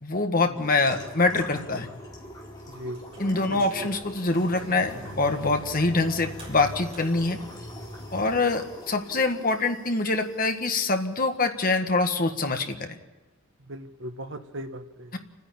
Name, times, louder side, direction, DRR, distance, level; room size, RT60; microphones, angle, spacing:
voice 1, 0.0-1.9 3.2-7.4 8.1-13.0 15.1-15.2, left 3 dB, 45° left, 5 dB, 1.6 m, -25 dB
sound 1, 0.5-11.0, left 1 dB, 20° left, 4.8 m, -42 dB
sound 2, 2.1-5.1 6.4-7.1, equal, 30° right, 6.3 m, -43 dB
voice 2, 2.7-3.0 3.5-3.6 13.7-15.2, equal, 60° right, 7 dB, 1.4 m, -38 dB
29.5 x 10.0 x 8.9 m, 1.1 s
head